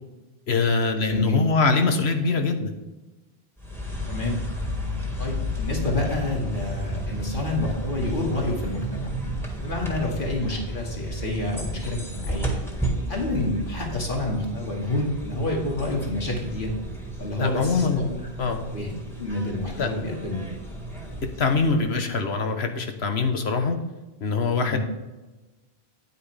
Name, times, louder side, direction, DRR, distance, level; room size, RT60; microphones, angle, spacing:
voice 1, 0.5-2.7 17.4-18.1 18.4-18.7 19.7-19.9 21.4-23.8 24.2-24.8, left 4 dB, 90° left, 6 dB, 1.4 m, -23 dB
voice 2, 1.0-1.4 4.1-4.4 5.2-9.2 9.6-12.5 13.1-16.7 17.2-18.2 18.7-20.4 24.6-24.8, left 2 dB, 55° left, -1 dB, 2.3 m, -28 dB
sound 1, 3.6-22.0, right 1 dB, ahead, 1.7 m, -32 dB
9.4 x 9.4 x 3.4 m, 1.1 s
omnidirectional pair, 1.0 m